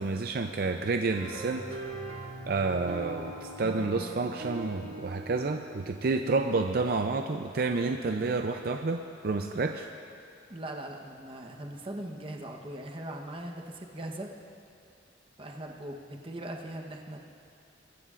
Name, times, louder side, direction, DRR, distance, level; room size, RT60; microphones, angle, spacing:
voice 1, 0.0-1.6 2.5-9.9, right 3 dB, 50° right, 5 dB, 0.4 m, -29 dB
sound 1, 1.1-6.7, right 2 dB, 70° right, 1.8 m, -41 dB
voice 2, 10.5-14.3 15.4-17.2, right 1 dB, 30° right, 1 dB, 1.0 m, -40 dB
22.5 x 14.0 x 2.5 m, 2.6 s
head